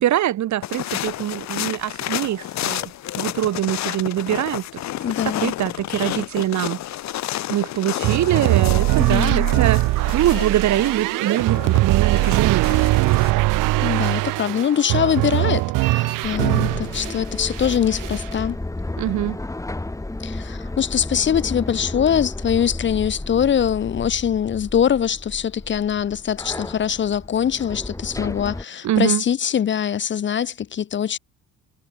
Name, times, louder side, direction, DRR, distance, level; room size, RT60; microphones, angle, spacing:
voice 1, 0.0-4.8 5.2-6.8 7.5-9.9 10.1-12.7 19.0-19.4 28.8-29.2, right 12 dB, 60° right, 2.2 m, -23 dB
sound 1, 0.6-13.3, left 14 dB, 60° left, 1.0 m, -31 dB
voice 2, 5.0-5.6 9.0-9.5 13.8-18.6 20.2-31.2, left 8 dB, 35° left, 0.8 m, -23 dB
sound 2, 8.0-17.2 17.5-18.3, right 20 dB, 80° right, 0.7 m, -21 dB
sound 3, 16.2-28.6, left 2 dB, 10° left, 3.7 m, -32 dB
cardioid pair, 115°, 31 cm